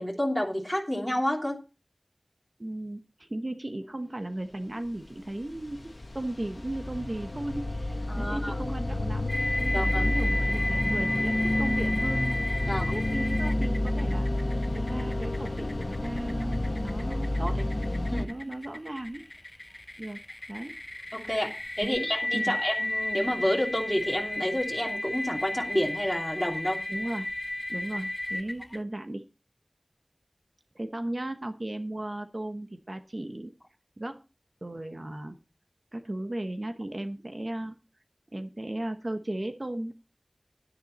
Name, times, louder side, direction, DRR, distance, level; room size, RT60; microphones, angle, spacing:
voice 1, 0.0-1.6 8.1-8.6 9.7-10.1 12.7-12.9 18.1-18.3 21.1-21.5 21.8-26.8, equal, 5° left, -2 dB, 3.0 m, -29 dB
voice 2, 2.6-12.4 12.7-14.3 14.7-17.7 18.3-19.2 20.0-20.2 20.5-20.7 21.8-22.6 26.9-27.3 27.7-29.2 30.7-33.5 34.0-34.2 34.6-35.4 35.9-37.8 38.3-39.9, right 1 dB, 50° right, 7 dB, 0.9 m, -36 dB
sound 1, 5.1-18.2, left 1 dB, 70° left, 1.1 m, -30 dB
sound 2, 9.3-28.8, left 1 dB, 40° left, 0.5 m, -33 dB
11.0 x 9.5 x 4.1 m, 0.31 s
wide cardioid pair, 40°, 0 cm